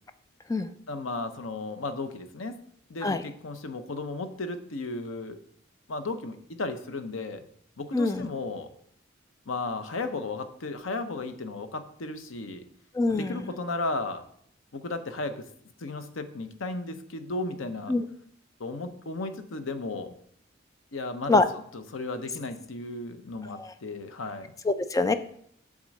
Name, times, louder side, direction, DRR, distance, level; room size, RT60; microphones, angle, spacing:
voice 1, 0.9-2.6 2.9-5.4 5.9-7.4 7.8-8.7 9.5-12.7 13.1-14.2 14.7-15.4 15.8-17.9 18.6-20.2 20.9-21.4 21.7-24.5, left 3 dB, 90° left, 9 dB, 0.8 m, -34 dB
voice 2, 7.9-8.3 12.9-13.4 17.9-18.0 21.3-21.5 23.5-23.7 24.6-25.1, left 3 dB, 15° left, 11 dB, 0.4 m, -24 dB
7.3 x 3.8 x 6.3 m, 0.65 s
head